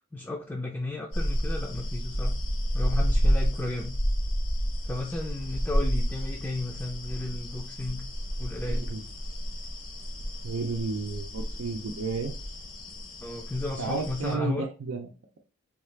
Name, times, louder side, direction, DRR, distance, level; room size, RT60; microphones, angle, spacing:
voice 1, 0.1-2.3 2.7-4.0 4.8-8.0 8.4-8.9 13.2-14.7, left 2 dB, 10° left, 0 dB, 0.4 m, -34 dB
sound 1, 1.1-14.3, equal, 65° left, 0.9 m, -30 dB
voice 2, 8.7-9.0 10.4-12.3 13.8-15.1, right 4 dB, 90° right, 1 dB, 0.5 m, -32 dB
3.6 x 2.4 x 3.2 m, 0.33 s
head